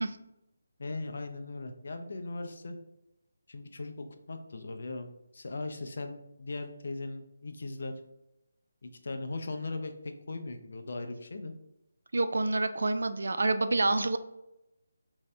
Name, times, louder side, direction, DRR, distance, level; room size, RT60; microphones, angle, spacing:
voice 1, 0.8-2.8 3.5-7.9 8.8-11.5, left 2 dB, 60° left, 6 dB, 0.5 m, -39 dB
voice 2, 12.1-14.2, right 2 dB, 65° right, 9 dB, 0.3 m, -27 dB
3.1 x 2.7 x 3.3 m, 0.91 s
figure-of-eight pair, 150°, 0 cm